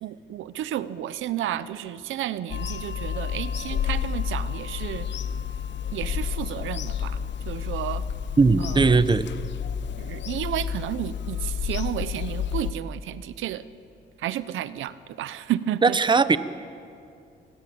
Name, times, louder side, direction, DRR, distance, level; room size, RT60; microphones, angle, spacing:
voice 1, 0.0-5.1 5.9-7.2 7.5-8.0 8.6-9.1 10.0-13.6 14.2-16.0, right 12 dB, 80° right, 15 dB, 0.9 m, -32 dB
Bird vocalization bird call bird song / Telephone, 2.5-12.7, left 8 dB, 65° left, 1.2 m, -30 dB
voice 2, 8.4-9.3 15.8-16.4, right 4 dB, 25° right, 13 dB, 1.0 m, -19 dB
27.0 x 21.0 x 8.8 m, 2.4 s
cardioid pair, 90°, 20 cm